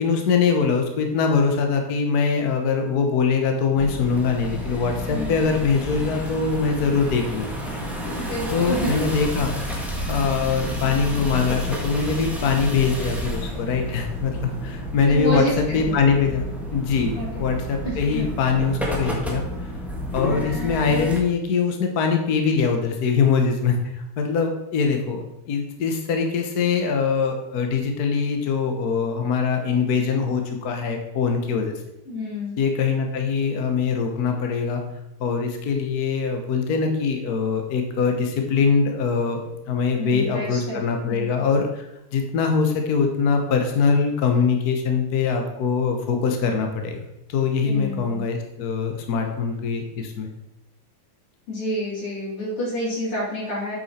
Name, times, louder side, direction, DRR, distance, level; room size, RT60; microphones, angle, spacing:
voice 1, 0.0-7.6 8.5-9.5 9.8-15.5 15.7-16.4 16.7-19.4 20.1-23.8 24.2-31.7 32.6-34.8 35.2-47.0 47.3-50.3, left 5 dB, 85° left, 4 dB, 0.8 m, -23 dB
sound 1, 3.7-21.2, equal, ahead, 0.5 m, -30 dB
voice 2, 8.2-8.9 15.0-16.0 17.2-17.3 17.8-18.2 32.1-32.5 40.0-40.8 41.1-41.2 47.6-48.2 51.5-53.7, equal, 45° left, -6 dB, 4.0 m, -28 dB
8.3 x 7.0 x 4.3 m, 0.88 s
omnidirectional pair, 3.4 m